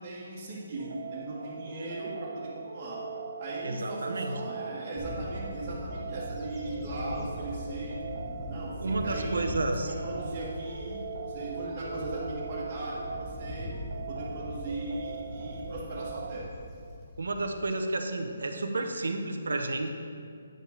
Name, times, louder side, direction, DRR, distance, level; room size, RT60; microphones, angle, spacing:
voice 1, 0.0-3.0 3.4-8.0 8.5-13.7 14.1-16.5, right 2 dB, 25° right, -10 dB, 1.7 m, -38 dB
sound 1, 0.8-16.4, right 5 dB, 65° right, 1.0 m, -41 dB
voice 2, 3.6-4.5 8.8-9.9 17.2-19.9, right 2 dB, 90° right, 5 dB, 1.0 m, -31 dB
Bird / Wind, 5.0-17.7, left 1 dB, 15° left, 0.9 m, -41 dB
9.3 x 5.2 x 5.8 m, 2.3 s
hypercardioid pair, 170°, 0 cm